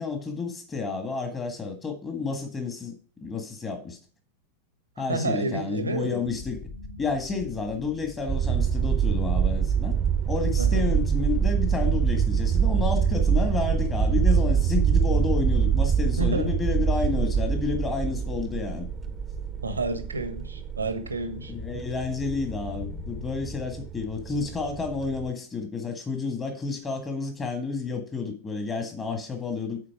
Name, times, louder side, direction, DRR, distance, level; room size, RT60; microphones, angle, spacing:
voice 1, 0.0-2.9 3.2-4.0 5.0-6.6 7.0-10.0 10.3-18.9 21.5-29.8, left 4 dB, 20° left, 1.7 m, -30 dB
voice 2, 5.1-6.2 10.6-10.9 16.2-16.6 19.6-21.5, right 2 dB, 80° right, 1.1 m, -30 dB
sound 1, 6.2-23.6, left 5 dB, 40° left, 2.1 m, -40 dB
sound 2, 8.3-25.3, right 8 dB, 20° right, 0.9 m, -25 dB
8.7 x 4.3 x 4.8 m
figure-of-eight pair, 90°, 0 cm